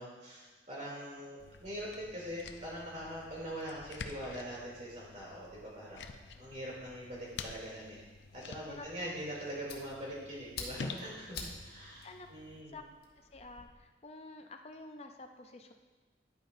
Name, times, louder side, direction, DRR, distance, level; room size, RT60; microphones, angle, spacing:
voice 1, 0.0-6.1 6.4-8.0 8.3-12.8, equal, 40° right, -5 dB, 2.8 m, -43 dB
sound 1, 1.4-12.6, left 4 dB, 85° left, 0.5 m, -49 dB
Fire, 9.1-13.6, left 4 dB, 65° left, 1.3 m, -48 dB
voice 2, 13.3-15.7, left 3 dB, 35° left, 5 dB, 0.5 m, -49 dB
10.5 x 9.2 x 2.6 m, 1.3 s
head